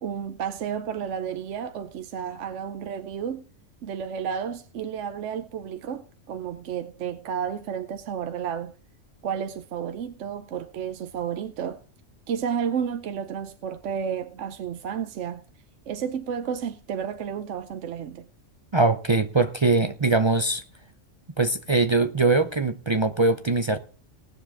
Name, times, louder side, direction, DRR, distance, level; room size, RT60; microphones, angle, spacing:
voice 1, 0.0-3.4 3.8-8.7 9.2-11.8 12.3-15.4 15.9-18.3, right 8 dB, 70° right, 1.0 m, -31 dB
voice 2, 18.7-20.6 21.4-23.8, right 3 dB, 40° right, 0.4 m, -22 dB
19.0 x 7.2 x 3.6 m
omnidirectional pair, 1.3 m